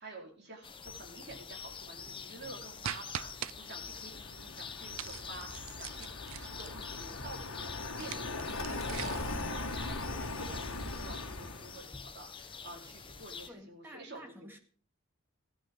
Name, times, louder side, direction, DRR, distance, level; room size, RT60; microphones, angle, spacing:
voice 1, 0.0-6.1 6.3-14.6, right 2 dB, 50° right, 4.6 m, -50 dB
sound 1, 0.6-13.5, left 6 dB, 25° left, 0.9 m, -46 dB
sound 2, 2.8-3.5 4.9-6.8 7.9-9.4, right 10 dB, 75° right, 0.5 m, -42 dB
Car passing by, 3.3-11.8, left 2 dB, 80° left, 1.9 m, -40 dB
voice 2, 13.5-14.6, equal, 10° right, 2.1 m, -51 dB
16.5 x 12.0 x 3.8 m
head